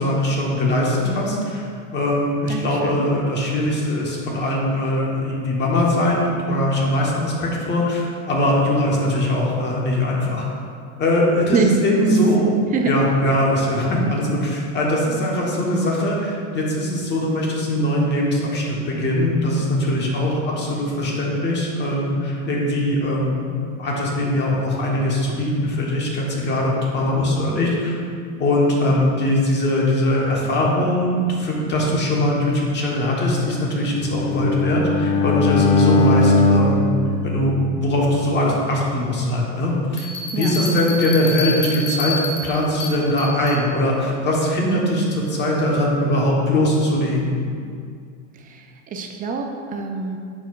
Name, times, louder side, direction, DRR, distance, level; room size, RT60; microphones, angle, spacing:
voice 1, 0.0-1.6 1.9-10.4 11.0-12.5 12.8-23.4 23.8-27.9 28.4-36.8 37.2-40.1 40.4-47.4, left 1 dB, 30° left, -3 dB, 1.3 m, -21 dB
voice 2, 2.5-3.1 11.5-11.7 12.1-12.2 12.7-12.9 40.3-40.5 48.3-50.2, right 4 dB, 20° right, 3 dB, 0.5 m, -26 dB
Bowed string instrument, 34.0-38.1, left 3 dB, 50° left, 0.7 m, -19 dB
sound 1, 40.0-43.6, left 2 dB, 85° left, 1.2 m, -29 dB
10.0 x 4.8 x 2.5 m, 2.3 s
supercardioid pair, 140°, 37 cm